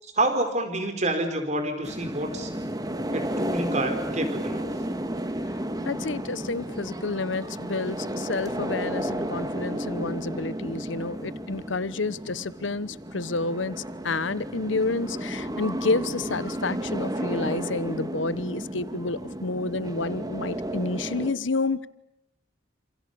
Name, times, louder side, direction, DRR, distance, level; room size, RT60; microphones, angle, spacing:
voice 1, 0.0-2.5 3.1-4.7, right 2 dB, 35° right, 4.7 m, -28 dB
sound 1, 1.8-21.3, right 1 dB, 20° right, 1.8 m, -33 dB
voice 2, 5.8-21.9, left 3 dB, 80° left, 1.1 m, -29 dB
29.0 x 28.0 x 6.9 m
head